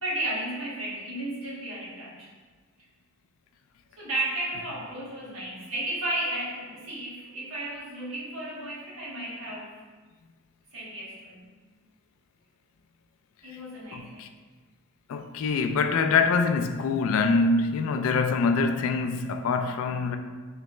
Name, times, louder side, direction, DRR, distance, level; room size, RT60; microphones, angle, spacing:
voice 1, 0.0-2.3 4.0-9.8 10.7-11.5 13.4-14.2, right 1 dB, 75° right, 1.5 m, -33 dB
voice 2, 13.9-14.3 15.1-20.2, left 4 dB, 70° left, 0.3 m, -24 dB
3.9 x 3.3 x 3.1 m
head